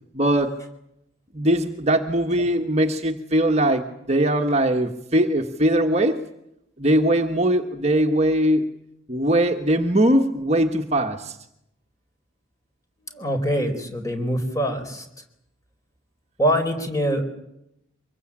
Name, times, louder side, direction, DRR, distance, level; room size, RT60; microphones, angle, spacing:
voice 1, 0.1-0.6 1.3-6.2 6.8-8.6 9.1-11.4, right 1 dB, 35° right, 4 dB, 1.4 m, -21 dB
voice 2, 13.1-15.1 16.4-17.2, equal, 15° left, 6 dB, 4.3 m, -24 dB
25.0 x 22.0 x 8.8 m, 0.80 s
head